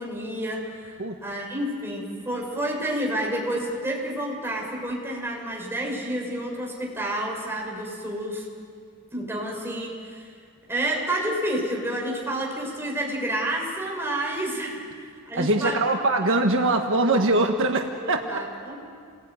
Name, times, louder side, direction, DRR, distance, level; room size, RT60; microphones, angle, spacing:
voice 1, 0.0-0.9 1.2-8.5 9.1-10.3 10.7-14.8 15.3-15.8 18.0-18.8, right 1 dB, 10° right, -2 dB, 6.5 m, -29 dB
voice 2, 15.3-18.2, right 2 dB, 65° right, 3 dB, 1.5 m, -22 dB
29.5 x 20.5 x 9.5 m, 2.3 s
head